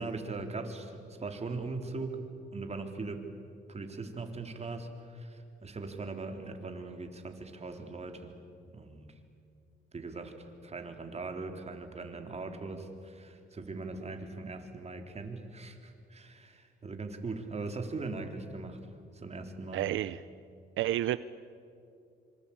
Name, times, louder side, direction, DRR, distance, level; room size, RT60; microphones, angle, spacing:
voice 1, 0.0-2.2 2.5-3.2 3.7-8.3 8.7-9.1 9.9-18.8 19.1-19.8, right 3 dB, 30° right, 5 dB, 3.7 m, -40 dB
voice 2, 19.7-20.2 20.8-21.2, right 14 dB, 80° right, 15 dB, 0.6 m, -29 dB
26.5 x 25.5 x 8.7 m, 2.4 s
cardioid pair, 90°, 20 cm